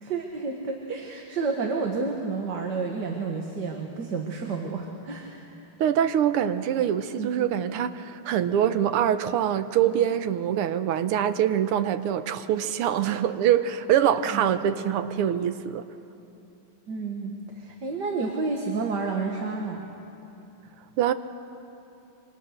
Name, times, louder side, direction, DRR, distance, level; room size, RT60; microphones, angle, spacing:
voice 1, 0.0-5.5 7.2-7.3 14.3-14.5 16.9-19.9, right 4 dB, 55° right, 1 dB, 2.0 m, -30 dB
voice 2, 5.8-15.8 21.0-21.1, right 10 dB, 90° right, 11 dB, 1.8 m, -24 dB
27.0 x 25.0 x 6.6 m, 2.9 s
omnidirectional pair, 2.4 m